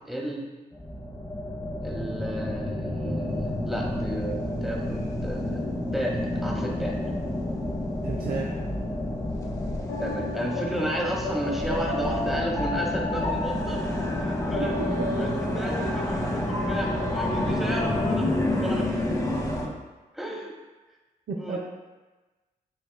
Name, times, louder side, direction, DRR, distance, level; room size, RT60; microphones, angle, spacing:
voice 1, 0.1-0.5 1.8-5.6 5.9-6.9 10.0-13.8 14.2-14.8 15.2-18.3 18.6-19.0 20.1-20.5 21.4-21.6, equal, ahead, -1 dB, 1.0 m, -33 dB
sound 1, 0.7-19.7, left 1 dB, 15° left, 0.8 m, -29 dB
sound 2, 6.3-18.1, left 2 dB, 75° left, 0.9 m, -35 dB
voice 2, 8.0-8.6 14.6-14.7 17.5-17.6 21.3-21.6, right 5 dB, 50° right, -2 dB, 0.5 m, -32 dB
6.7 x 2.3 x 2.2 m, 1.2 s
hypercardioid pair, 40°, 19 cm